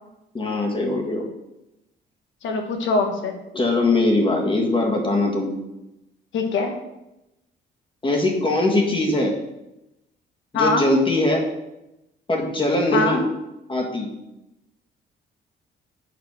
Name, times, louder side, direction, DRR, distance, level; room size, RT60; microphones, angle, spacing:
voice 1, 0.3-1.2 3.5-5.5 8.0-9.3 10.5-11.4 12.3-13.2 13.7-14.1, left 2 dB, 25° left, 0 dB, 1.9 m, -21 dB
voice 2, 2.4-3.4 6.3-6.7 10.5-10.9 12.9-13.2, left 3 dB, 75° left, 4 dB, 1.3 m, -22 dB
7.3 x 4.2 x 6.2 m, 0.92 s
cardioid pair, 90°, 20 cm